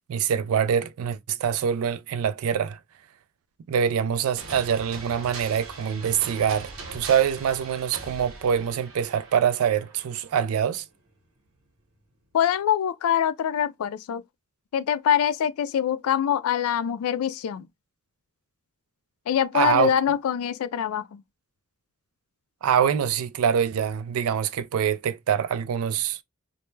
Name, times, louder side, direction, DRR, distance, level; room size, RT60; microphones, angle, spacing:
voice 1, 0.1-2.8 3.7-10.8 19.5-19.9 22.6-26.2, right 8 dB, 90° right, 0.3 m, -24 dB
sound 1, 4.4-10.9, right 3 dB, 75° right, 0.9 m, -41 dB
voice 2, 12.3-14.2 14.7-17.7 19.3-21.2, left 9 dB, 85° left, 0.3 m, -24 dB
2.1 x 2.0 x 3.1 m
head